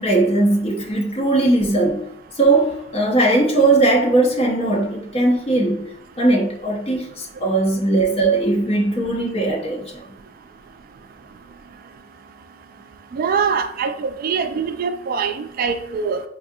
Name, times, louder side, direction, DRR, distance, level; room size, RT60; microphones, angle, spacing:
voice 1, 0.0-2.1 2.4-5.9 6.2-9.9, right 2 dB, 30° left, 0.8 m, -19 dB
voice 2, 13.1-16.2, right 6 dB, 50° right, 0.3 m, -23 dB
4.8 x 2.4 x 2.7 m
head